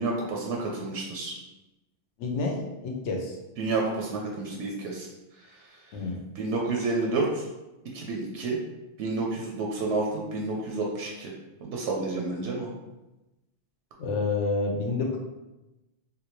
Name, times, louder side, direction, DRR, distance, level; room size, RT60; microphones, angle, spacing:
voice 1, 0.0-1.4 3.6-5.1 5.4-5.8 6.4-7.5 7.9-8.6 9.0-11.3 11.6-12.7, right 3 dB, 80° right, -1 dB, 0.9 m, -30 dB
voice 2, 2.2-3.3 5.9-6.2 14.0-15.2, left 3 dB, 85° left, 1 dB, 0.9 m, -29 dB
3.4 x 2.5 x 3.0 m, 1.0 s
omnidirectional pair, 1.2 m